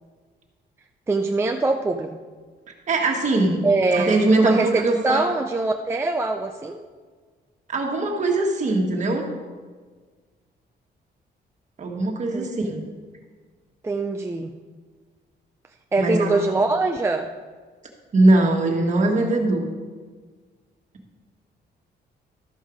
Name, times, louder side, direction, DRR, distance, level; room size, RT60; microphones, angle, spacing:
voice 1, 1.1-2.1 3.6-6.8 12.3-12.5 13.8-14.5 15.9-17.3, right 2 dB, 15° right, 3 dB, 0.4 m, -23 dB
voice 2, 2.7-3.6 3.9-5.3 7.7-9.3 11.8-12.8 16.0-16.3 18.1-19.7, right 2 dB, 45° right, 1 dB, 1.5 m, -21 dB
13.0 x 5.5 x 5.0 m, 1.5 s
cardioid pair, 145°, 18 cm